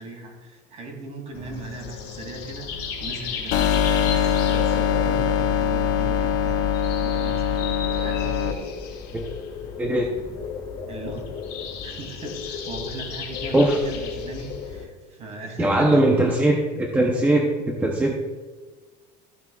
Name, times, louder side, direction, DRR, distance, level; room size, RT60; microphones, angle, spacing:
voice 1, 0.0-8.6 10.9-11.3 11.8-16.3, right 3 dB, 35° right, 1 dB, 2.7 m, -38 dB
sound 1, 1.3-14.8, left 6 dB, 50° left, 1.9 m, -34 dB
sound 2, 3.5-8.5, left 8 dB, 65° left, 0.8 m, -22 dB
voice 2, 9.8-10.1 13.5-13.8 15.6-18.1, right 1 dB, 10° right, 0 dB, 0.7 m, -20 dB
14.0 x 7.8 x 2.4 m, 1.4 s
cardioid pair, 160°, 20 cm